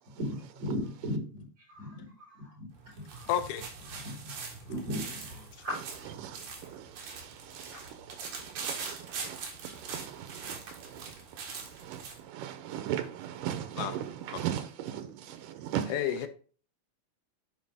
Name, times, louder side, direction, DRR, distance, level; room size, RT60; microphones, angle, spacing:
voice 1, 0.2-2.7 3.0-3.3 3.9-4.2 4.7-6.1 7.7-7.8, equal, 40° right, 5.2 m, -37 dB
sound 1, 2.7-12.2, right 5 dB, 70° right, 2.9 m, -42 dB
voice 2, 3.3-3.7 13.7-14.0 14.3-14.5 15.9-16.3, left 10 dB, 85° left, 2.3 m, -31 dB
voice 3, 7.1-7.8 8.2-9.4 9.8-11.1 11.8-12.0 12.3-15.9, right 10 dB, 90° right, 2.4 m, -38 dB
9.4 x 4.4 x 3.5 m
omnidirectional pair, 3.6 m